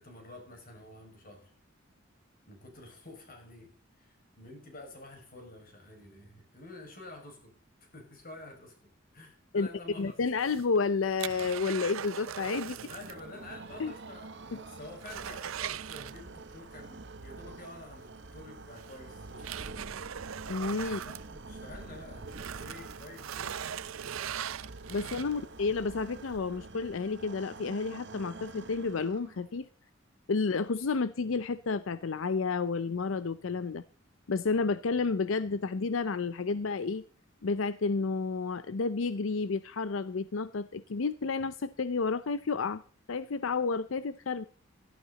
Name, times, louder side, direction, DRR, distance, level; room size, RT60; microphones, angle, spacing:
voice 1, 0.0-1.5 2.5-7.5 7.8-8.7 9.1-10.1 12.7-19.6 20.9-22.3 22.6-23.7 24.0-24.5 25.3-25.5, left 2 dB, 45° left, 3 dB, 5.9 m, -49 dB
voice 2, 10.0-12.8 13.8-13.9 14.5-14.6 20.5-21.0 24.9-29.7 30.3-33.8 34.3-37.0 37.4-42.8 43.1-44.4, left 4 dB, 75° left, 15 dB, 0.6 m, -31 dB
sound 1, 10.3-13.3 13.5-13.6 14.1-14.2 14.6-16.6 18.0-18.1 18.8-21.9 22.2-25.6 26.1-26.2, right 9 dB, 85° right, 0.5 m, -40 dB
sound 2, 12.6-29.6, right 3 dB, 60° right, 1.2 m, -47 dB
16.5 x 12.5 x 4.0 m, 0.43 s
head